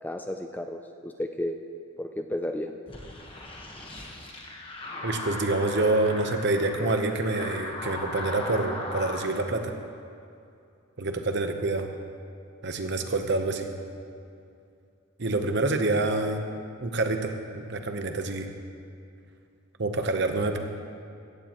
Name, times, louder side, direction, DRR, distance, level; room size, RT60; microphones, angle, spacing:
voice 1, 0.0-1.6 2.0-2.7, left 1 dB, 10° left, 5 dB, 0.4 m, -33 dB
sound 1, 2.9-9.3, left 2 dB, 25° left, 1.2 m, -37 dB
voice 2, 5.0-9.7 11.0-11.9 12.6-13.7 15.2-16.4 16.8-18.5 19.8-20.6, right 2 dB, 50° right, 5 dB, 0.9 m, -27 dB
16.0 x 15.0 x 3.0 m, 2.5 s
head